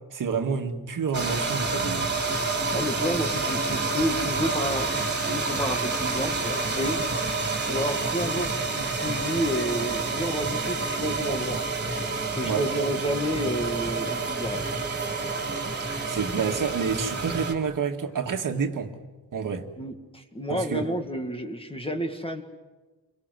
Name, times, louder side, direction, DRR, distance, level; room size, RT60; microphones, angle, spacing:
voice 1, 0.1-2.1 12.4-12.7 16.1-18.9 19.3-19.7 20.5-20.9, right 6 dB, 50° right, 4 dB, 2.0 m, -28 dB
sound 1, 1.1-17.5, right 3 dB, 25° right, 3.2 m, -28 dB
voice 2, 2.7-7.0 7.7-11.6 12.3-14.7 19.8-22.4, equal, 15° left, 6 dB, 1.9 m, -30 dB
29.0 x 23.5 x 7.7 m, 1.2 s
wide cardioid pair, 155°, 39 cm